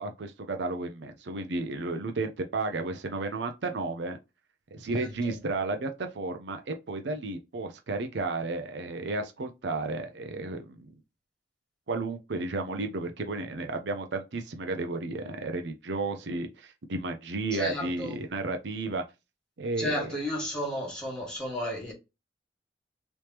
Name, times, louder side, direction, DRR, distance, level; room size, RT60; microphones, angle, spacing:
voice 1, 0.0-4.2 4.7-10.9 11.9-19.0 19.6-20.2, right 3 dB, 70° right, 0.6 m, -33 dB
voice 2, 4.9-5.4 17.5-18.2 19.8-21.9, left 1 dB, 5° left, 1.8 m, -33 dB
3.4 x 3.1 x 2.9 m
head